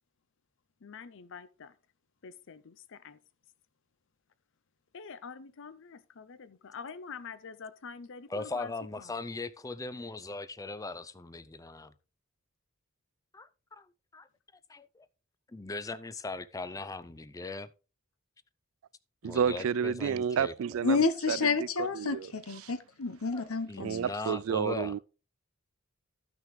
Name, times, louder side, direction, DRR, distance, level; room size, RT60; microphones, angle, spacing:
voice 1, 0.8-1.7 2.2-3.2 4.9-8.7 9.0-9.1, left 5 dB, 60° left, 0.6 m, -46 dB
voice 2, 8.3-11.9 13.3-13.9 14.1-14.3 14.7-15.1 15.5-17.7 19.2-20.5 23.3-24.9, left 3 dB, 15° left, 0.4 m, -39 dB
voice 3, 19.2-21.0 21.3-21.4 21.8-22.3 23.8-25.0, right 7 dB, 70° right, 0.3 m, -30 dB
voice 4, 20.8-24.0, left 4 dB, 85° left, 1.0 m, -30 dB
14.0 x 6.2 x 3.2 m
head